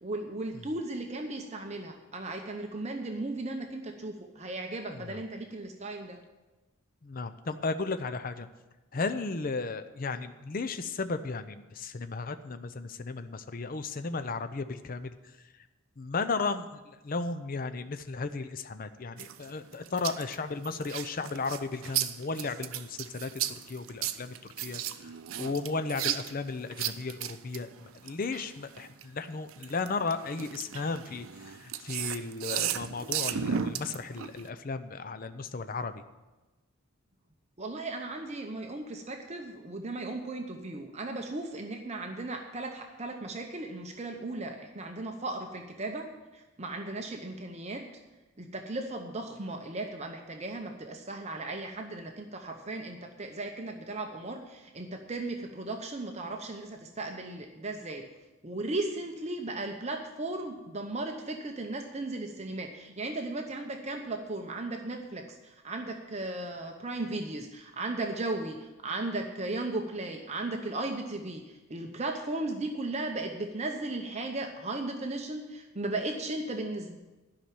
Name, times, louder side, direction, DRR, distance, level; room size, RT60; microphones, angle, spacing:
voice 1, 0.0-6.2 37.6-46.1 46.3-47.8 48.4-58.0 58.4-77.0, right 2 dB, 35° right, 3 dB, 0.8 m, -36 dB
voice 2, 4.9-5.2 7.0-8.5 8.9-15.1 16.0-23.3 23.7-25.1 25.4-36.0, left 4 dB, 45° left, 10 dB, 0.6 m, -35 dB
sound 1, 19.2-29.0 29.5-34.5, right 9 dB, 90° right, 0.5 m, -35 dB
11.5 x 5.8 x 9.0 m, 1.1 s
head